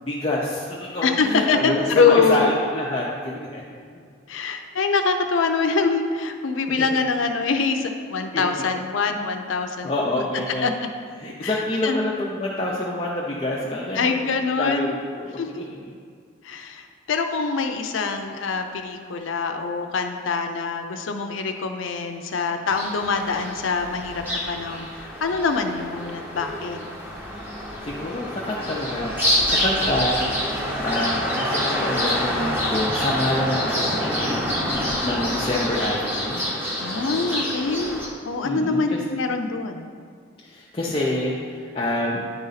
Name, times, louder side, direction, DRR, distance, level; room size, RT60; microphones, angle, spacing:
voice 1, 0.0-3.6 8.3-8.5 9.8-10.7 11.2-14.3 14.6-15.9 27.8-30.3 30.8-34.4 34.7-36.4 38.4-39.0 40.4-42.3, left 1 dB, 30° left, -4 dB, 0.5 m, -27 dB
voice 2, 1.0-2.5 4.3-9.9 10.6-10.7 11.4-12.1 14.0-15.0 15.4-15.7 16.4-26.8 36.8-39.9, left 4 dB, 80° left, 5 dB, 0.5 m, -24 dB
sound 1, 22.7-38.1, equal, 10° right, 0.9 m, -27 dB
10.0 x 4.0 x 4.0 m, 2.1 s
head